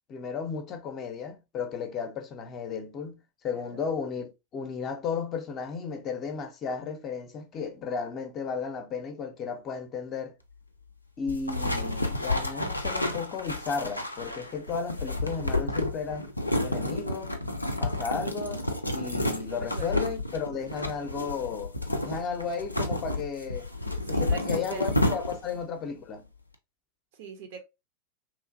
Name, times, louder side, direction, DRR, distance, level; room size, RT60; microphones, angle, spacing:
voice 1, 0.1-10.4 11.2-16.3 16.6-17.4 17.8-21.7 22.0-23.7 24.1-26.3, left 5 dB, 30° left, 0.5 m, -34 dB
voice 2, 3.5-3.8 19.5-20.2 24.1-24.9 27.1-27.6, right 5 dB, 50° right, 0.6 m, -43 dB
sound 1, 11.3-25.6, left 1 dB, 85° left, 0.4 m, -30 dB
3.0 x 2.5 x 2.4 m
figure-of-eight pair, 90°, 0 cm